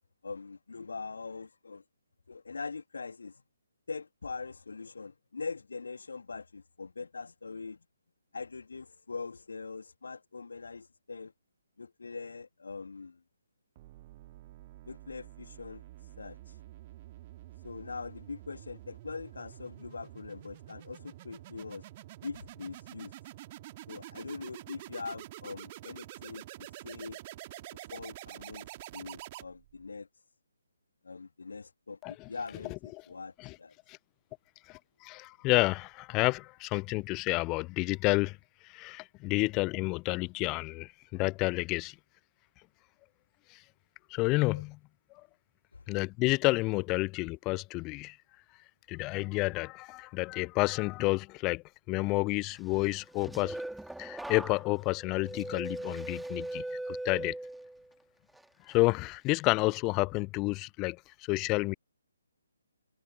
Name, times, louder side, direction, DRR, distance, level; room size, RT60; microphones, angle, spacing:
voice 1, 0.2-1.8 2.3-3.4 3.9-7.8 8.3-11.3 11.8-13.2 14.9-16.6 17.6-21.8 22.2-23.1 23.9-27.2 27.9-28.7 28.9-30.2 31.0-33.7 44.5-44.6 45.7-45.8, left 4 dB, 60° left, 2.5 m, -42 dB
sound 1, 13.8-29.9, right 16 dB, 30° right, 2.2 m, -48 dB
voice 2, 34.7-38.4 38.7-41.9 44.1-44.8 45.9-48.2 48.9-53.6 54.0-57.3 58.7-61.0 61.3-61.7, left 23 dB, 20° left, 0.7 m, -30 dB
sound 2, 52.9-57.9 58.3-58.7, right 1 dB, ahead, 2.7 m, -40 dB
figure-of-eight pair, 135°, 0 cm